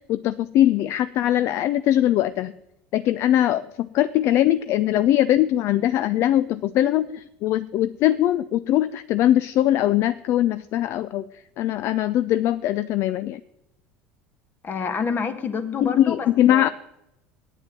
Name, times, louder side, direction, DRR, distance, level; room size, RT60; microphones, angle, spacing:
voice 1, 0.1-2.5 2.9-11.3 11.6-13.4 15.8-16.7, left 12 dB, 55° left, 15 dB, 0.5 m, -21 dB
voice 2, 14.6-16.7, left 5 dB, 35° left, 9 dB, 1.5 m, -28 dB
9.0 x 7.2 x 9.0 m, 0.83 s
hypercardioid pair, 75°, 5 cm